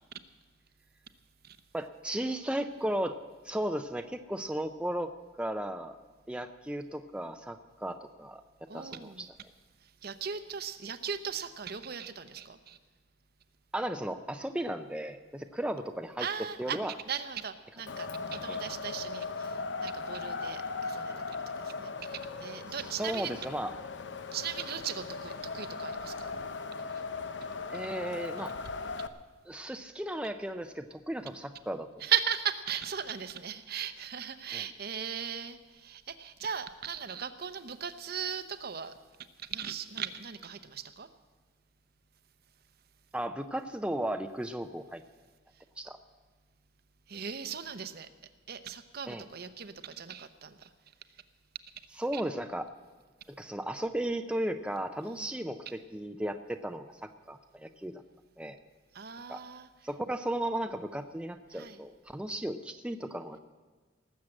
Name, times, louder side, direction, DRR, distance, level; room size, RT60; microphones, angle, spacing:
voice 1, 1.7-3.2 3.4-5.1 5.4-6.0 6.3-8.4 8.7-9.3 13.7-16.3 16.6-16.9 18.5-18.6 22.7-23.7 27.7-28.5 29.5-31.9 34.5-34.6 43.1-45.0 45.8-46.0 49.1-49.2 52.0-52.7 53.4-58.0 58.4-58.6 59.3-59.4 59.8-63.4, right 1 dB, 5° right, 7 dB, 0.4 m, -35 dB
voice 2, 8.7-9.3 9.8-12.8 16.2-23.4 24.3-26.3 32.0-38.9 39.4-41.1 47.1-48.1 48.5-50.7 52.1-52.2 55.0-55.3 58.9-59.7 61.5-61.8, right 8 dB, 55° right, 11 dB, 0.7 m, -37 dB
Wind, 17.9-29.1, left 4 dB, 65° left, 0.7 m, -38 dB
19.0 x 7.4 x 7.7 m, 1.4 s
head